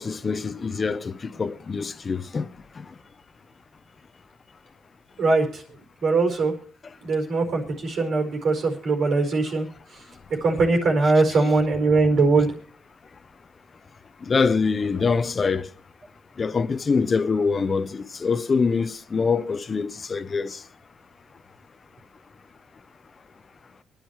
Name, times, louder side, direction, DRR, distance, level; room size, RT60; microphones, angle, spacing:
voice 1, 0.0-2.5 2.7-2.9 14.2-15.7 16.4-20.6, left 5 dB, 35° left, 0.9 m, -24 dB
voice 2, 5.2-5.6 6.0-6.5 7.0-9.7 10.3-12.5, right 3 dB, 65° right, 4.8 m, -21 dB
24.5 x 10.5 x 3.2 m
cardioid pair, 90°, 0 cm